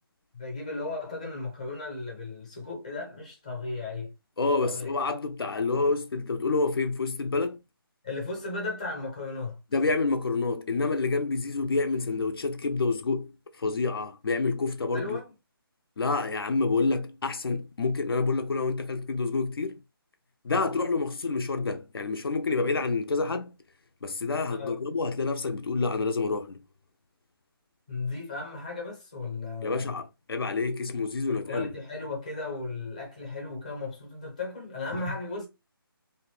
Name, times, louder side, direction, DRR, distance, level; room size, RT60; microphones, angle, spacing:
voice 1, 0.3-4.1 4.6-5.0 8.0-9.6 14.9-15.3 24.5-24.8 27.9-30.0 31.3-35.5, left 3 dB, 20° left, 0.6 m, -35 dB
voice 2, 4.4-7.6 9.7-13.3 13.6-15.2 16.0-19.8 20.4-23.5 24.0-26.6 29.6-31.7 34.9-35.0, left 3 dB, 75° left, 0.4 m, -28 dB
2.5 x 2.0 x 3.1 m
hypercardioid pair, 175°, 13 cm